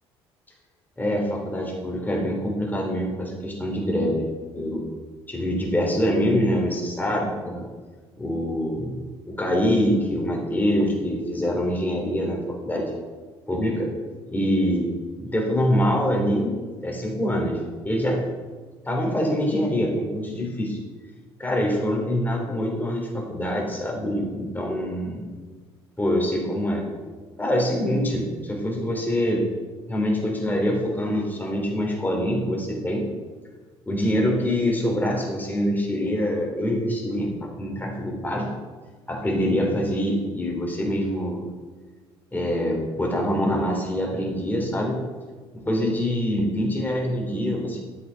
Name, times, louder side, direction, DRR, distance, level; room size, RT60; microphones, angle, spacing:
voice 1, 1.0-4.8 5.3-7.6 8.2-12.9 13.5-13.9 14.3-14.9 15.2-16.5 16.8-17.6 17.8-18.2 18.8-20.8 21.4-25.2 26.0-26.8 27.4-29.4 29.9-33.1 33.9-38.5 39.1-41.4 42.3-45.0 45.6-47.8, equal, 15° left, -1 dB, 2.8 m, -25 dB
10.5 x 7.7 x 3.4 m, 1.4 s
hypercardioid pair, 55°, 13 cm